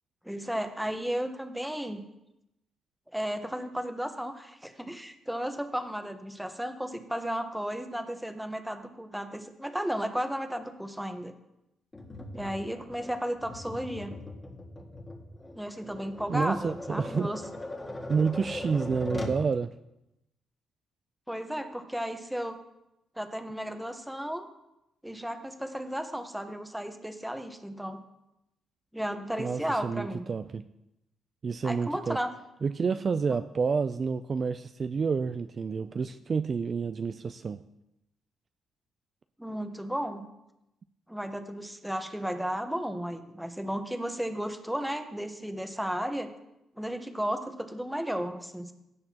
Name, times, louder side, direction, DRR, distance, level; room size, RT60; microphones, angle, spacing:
voice 1, 0.2-2.0 3.1-11.3 12.3-14.1 15.5-17.4 21.3-22.6 23.2-24.5 25.0-28.0 28.9-30.3 31.6-32.3 39.4-40.3 41.1-46.3 46.8-48.7, equal, 5° right, 6 dB, 1.0 m, -34 dB
Tap, 11.9-19.4, left 1 dB, 20° left, 1.7 m, -40 dB
voice 2, 16.3-17.3 18.1-19.7 29.4-30.6 31.4-32.2 32.6-37.6, right 5 dB, 40° right, 9 dB, 0.3 m, -29 dB
16.0 x 6.6 x 2.9 m, 0.89 s
cardioid pair, 90°, 0 cm